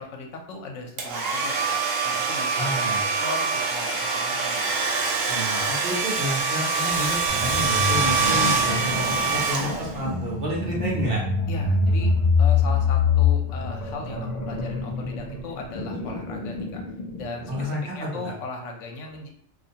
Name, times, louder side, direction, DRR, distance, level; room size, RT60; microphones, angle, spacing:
voice 1, 0.0-5.0 11.5-12.1 12.4-16.8 17.2-19.3, left 3 dB, 75° left, 2 dB, 0.9 m, -38 dB
Domestic sounds home sounds, 1.0-10.1, right 4 dB, 85° right, 1.0 m, -24 dB
voice 2, 2.5-3.0 5.3-11.2 17.5-18.3, equal, 55° right, -4 dB, 0.8 m, -30 dB
sound 1, 7.3-17.8, left 4 dB, 50° left, 0.5 m, -25 dB
2.4 x 2.1 x 2.7 m, 0.66 s
omnidirectional pair, 1.3 m